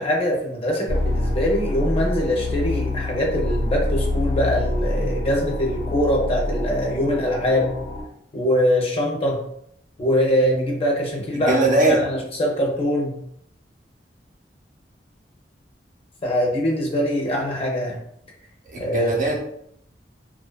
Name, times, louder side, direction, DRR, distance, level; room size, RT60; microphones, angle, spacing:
voice 1, 0.0-7.7 8.3-9.4 10.0-11.6 11.9-13.2 16.2-18.0 18.7-19.1, equal, 35° left, -1 dB, 0.5 m, -23 dB
sound 1, 0.9-8.0, left 1 dB, 65° left, 1.0 m, -26 dB
voice 2, 11.5-12.0 18.7-19.4, right 2 dB, 50° right, -1 dB, 0.6 m, -20 dB
2.5 x 2.2 x 2.2 m, 0.70 s
head